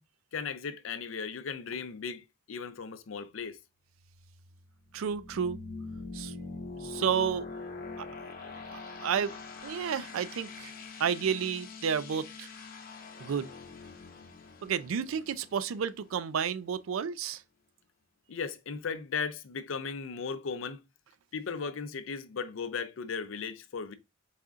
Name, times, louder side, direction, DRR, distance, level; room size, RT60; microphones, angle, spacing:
voice 1, 0.3-3.6 18.3-20.8 21.3-23.9, left 5 dB, 70° left, 0.5 m, -36 dB
sound 1, 3.9-16.6, left 3 dB, 45° left, 0.8 m, -44 dB
voice 2, 4.9-5.6 6.1-6.3 6.8-7.5 8.0-8.1 8.7-9.3 9.6-10.7 11.0-12.5 13.2-13.5 14.6-17.4, right 7 dB, 85° right, 0.4 m, -31 dB
4.2 x 2.4 x 3.5 m
head